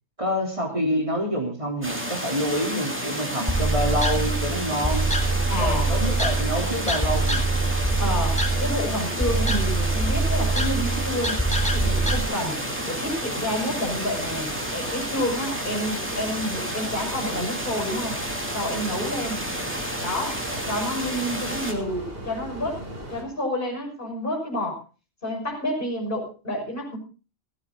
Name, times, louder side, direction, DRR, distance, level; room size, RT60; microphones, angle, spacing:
voice 1, 0.2-5.1 5.6-7.5, equal, 30° right, 0 dB, 3.9 m, -27 dB
sound 1, 1.8-21.7, equal, 10° right, 2.8 m, -31 dB
sound 2, 3.5-12.2, right 2 dB, 5° left, 2.4 m, -24 dB
sound 3, 4.7-23.2, right 1 dB, 55° right, 4.0 m, -38 dB
voice 2, 5.5-5.9 8.0-11.4 11.7-18.2 18.5-19.4 20.0-22.8 23.1-24.8 25.2-27.0, left 1 dB, 50° left, 2 dB, 6.4 m, -29 dB
16.5 x 15.0 x 4.0 m, 0.34 s
omnidirectional pair, 1.2 m